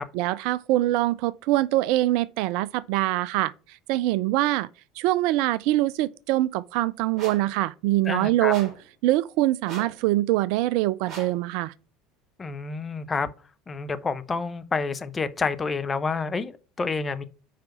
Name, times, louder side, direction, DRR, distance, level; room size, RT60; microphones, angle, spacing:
voice 1, 0.1-3.5 3.9-4.7 5.0-8.7 9.0-11.7, right 16 dB, 60° right, 0.3 m, -24 dB
sound 1, 7.2-7.5 8.5-8.9 9.6-10.0 11.1-11.4, right 4 dB, 40° right, 3.5 m, -40 dB
voice 2, 8.0-8.5 12.4-13.3 13.7-17.2, left 4 dB, 25° left, 0.8 m, -29 dB
5.8 x 5.0 x 5.7 m
figure-of-eight pair, 70°, 0 cm